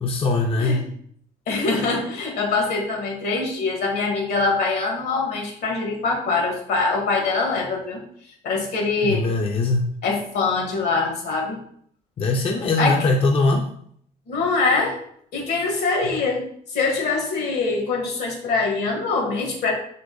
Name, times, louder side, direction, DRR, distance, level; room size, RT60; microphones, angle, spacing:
voice 1, 0.0-0.9 9.0-9.8 12.2-13.7, left 2 dB, 35° left, 2 dB, 0.5 m, -21 dB
voice 2, 1.5-8.0 8.4-9.3 10.0-11.6 12.8-13.0 14.3-15.0 15.3-16.4 16.7-19.7, left 3 dB, 75° left, 0 dB, 1.6 m, -23 dB
3.8 x 3.0 x 3.8 m, 0.64 s
cardioid pair, 110°, 17 cm